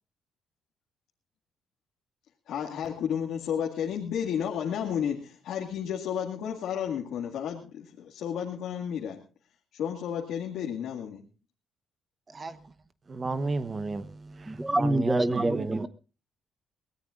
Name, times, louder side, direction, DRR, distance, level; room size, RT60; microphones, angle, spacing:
voice 1, 2.5-9.2 9.7-11.2, left 8 dB, 80° left, -1 dB, 2.1 m, -32 dB
voice 2, 13.1-15.9, right 3 dB, 35° right, 12 dB, 1.1 m, -32 dB
voice 3, 14.5-15.9, right 1 dB, 10° right, 17 dB, 0.8 m, -26 dB
22.5 x 17.5 x 2.5 m, 0.34 s
cardioid pair, 90°, 0 cm